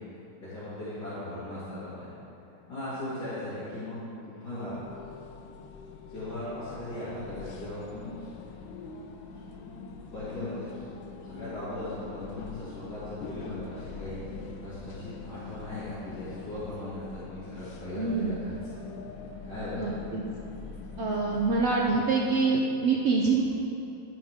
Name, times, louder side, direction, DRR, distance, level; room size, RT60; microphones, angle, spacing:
voice 1, 0.4-2.1 2.7-4.0 4.3-4.8 6.1-8.3 10.1-10.8 11.2-18.7 19.5-20.0, left 1 dB, 55° left, -14 dB, 3.2 m, -38 dB
sound 1, 4.7-21.8, left 4 dB, 85° left, 1.5 m, -43 dB
voice 2, 17.9-18.4 19.8-20.2 21.0-23.4, right 4 dB, 75° right, -2 dB, 0.6 m, -25 dB
11.0 x 9.7 x 3.6 m, 2.8 s
omnidirectional pair, 2.2 m